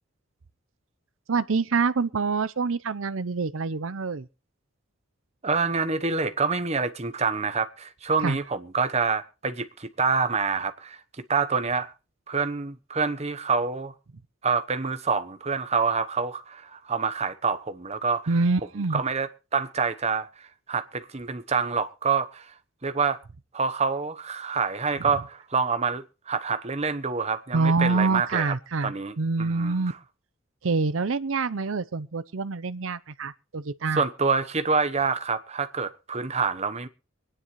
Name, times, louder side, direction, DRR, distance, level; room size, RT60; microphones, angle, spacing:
voice 1, 1.3-4.3 8.2-8.4 18.3-19.0 27.5-29.9 30.6-34.0, right 4 dB, 75° right, 0.7 m, -26 dB
voice 2, 5.4-11.0 11.3-11.9 12.3-13.9 14.4-18.4 18.9-22.5 22.8-23.2 23.5-28.5 28.8-30.0 33.9-36.9, right 5 dB, 30° right, 1.0 m, -27 dB
24.5 x 9.9 x 3.2 m
head